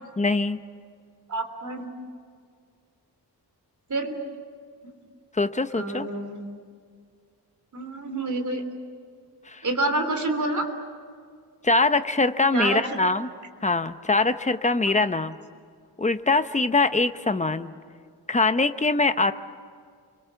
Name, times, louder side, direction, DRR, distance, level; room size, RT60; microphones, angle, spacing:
voice 1, 0.2-0.6 5.4-6.1 9.5-9.6 11.6-13.3 13.6-15.4 16.0-17.7 18.3-19.3, left 3 dB, 15° left, 10 dB, 0.8 m, -23 dB
voice 2, 1.3-1.9 3.9-4.2 5.7-6.5 7.7-8.6 9.6-10.7 12.5-13.0 14.8-14.9, right 2 dB, 45° right, 6 dB, 3.3 m, -28 dB
29.5 x 24.0 x 7.0 m, 2.1 s
wide cardioid pair, 155°, 41 cm